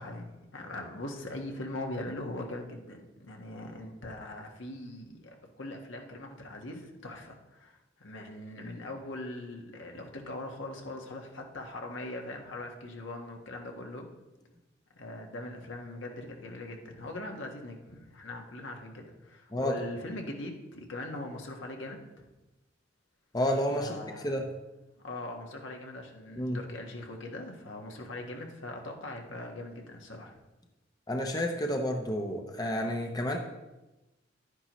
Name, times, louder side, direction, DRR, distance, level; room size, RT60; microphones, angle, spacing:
voice 1, 0.0-14.1 15.0-22.3 23.8-24.4 25.0-30.4, left 2 dB, 70° left, 2 dB, 1.4 m, -41 dB
voice 2, 23.3-24.5 26.4-26.6 31.1-33.4, equal, 20° left, 2 dB, 0.7 m, -30 dB
11.5 x 9.8 x 3.1 m, 1.0 s
head